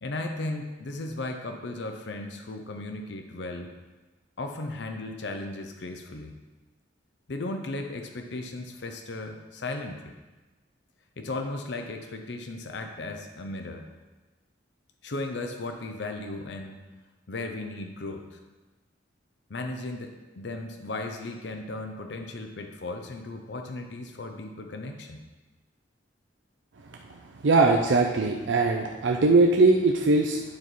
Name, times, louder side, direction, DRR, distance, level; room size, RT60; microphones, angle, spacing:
voice 1, 0.0-3.7 4.4-6.3 7.3-10.1 11.2-13.8 15.0-16.8 17.3-18.4 19.5-25.2, left 2 dB, 65° left, 5 dB, 0.6 m, -36 dB
voice 2, 27.4-30.4, right 3 dB, 80° right, 1 dB, 0.5 m, -20 dB
9.5 x 4.1 x 4.5 m, 1.2 s
head